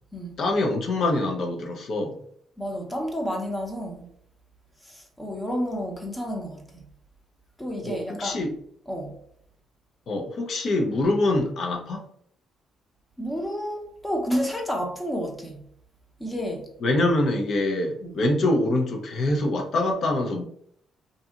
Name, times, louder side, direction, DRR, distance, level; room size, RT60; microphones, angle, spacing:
voice 1, 0.4-2.2 7.8-8.5 10.1-12.0 16.8-20.4, left 2 dB, 60° left, 0.5 m, -24 dB
voice 2, 2.6-4.1 4.8-6.9 7.6-8.4 8.9-9.1 13.2-15.6 16.2-16.7 18.0-18.1, equal, 10° left, 0.7 m, -30 dB
2.7 x 2.6 x 2.3 m
cardioid pair, 90°, 0 cm